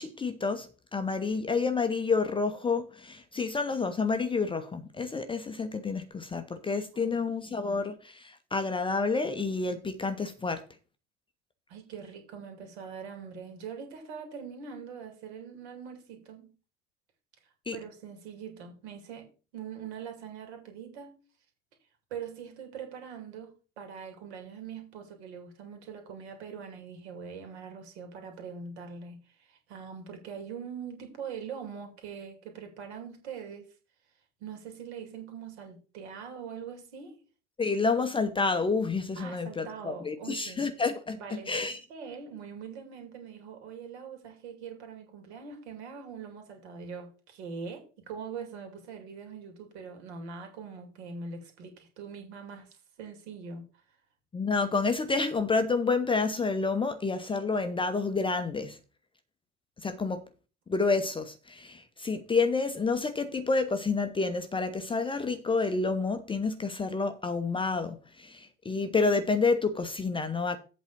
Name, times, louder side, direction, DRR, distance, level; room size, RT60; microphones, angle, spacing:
voice 1, 0.0-10.6 17.7-17.8 37.6-41.8 54.3-58.8 59.8-60.2 60.7-70.6, left 4 dB, 15° left, 0.8 m, -29 dB
voice 2, 6.9-7.6 11.7-16.5 17.7-21.2 22.1-33.7 34.4-37.2 39.2-40.6 41.1-52.7 53.0-53.6, right 6 dB, 60° right, 2.6 m, -43 dB
8.1 x 4.2 x 6.8 m
figure-of-eight pair, 70°, 37 cm